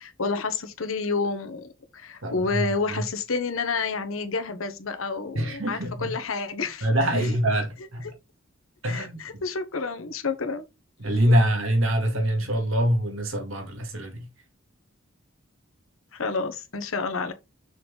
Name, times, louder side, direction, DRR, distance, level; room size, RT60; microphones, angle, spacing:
voice 1, 0.0-6.9 7.1-7.3 8.9-10.6 11.3-11.4 16.1-17.3, left 4 dB, 80° left, 1.0 m, -29 dB
voice 2, 2.2-3.0 5.4-6.1 6.8-7.7 7.9-8.0 8.8-9.2 11.0-14.3, right 1 dB, 75° right, 1.8 m, -24 dB
6.4 x 4.0 x 3.9 m
head